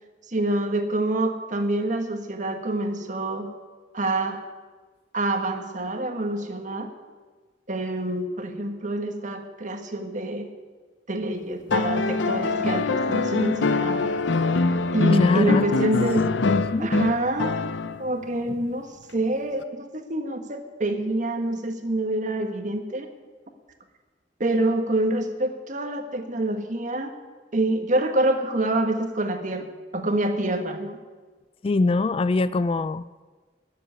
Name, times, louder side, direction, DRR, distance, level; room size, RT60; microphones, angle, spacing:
voice 1, 0.3-3.5 3.9-4.4 5.1-6.9 7.7-10.5 11.1-14.1 14.9-16.2 16.8-17.6 18.0-23.1 24.4-27.2 27.5-29.6 29.9-31.0, right 1 dB, 45° right, 6 dB, 1.5 m, -26 dB
sound 1, 11.7-18.1 19.6-19.7, left 3 dB, 85° left, 0.7 m, -24 dB
voice 2, 15.1-16.0 16.4-16.9 31.6-33.2, left 3 dB, 30° left, 16 dB, 0.3 m, -23 dB
13.5 x 7.5 x 9.5 m, 1.4 s
head